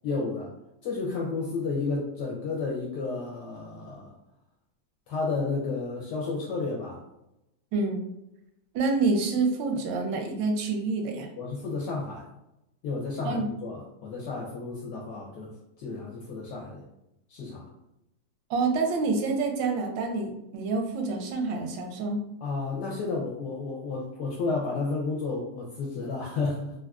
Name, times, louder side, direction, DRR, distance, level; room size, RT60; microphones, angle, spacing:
voice 1, 0.0-0.5 0.8-4.1 5.1-7.0 11.4-12.3 12.8-15.5 15.8-16.8 17.3-17.7 22.4-26.7, left 3 dB, 75° left, -3 dB, 1.1 m, -32 dB
voice 2, 7.7-8.0 8.7-11.3 13.2-13.5 18.5-22.2, right 3 dB, 85° right, 3 dB, 1.3 m, -27 dB
3.5 x 2.4 x 2.3 m, 0.87 s
omnidirectional pair, 2.0 m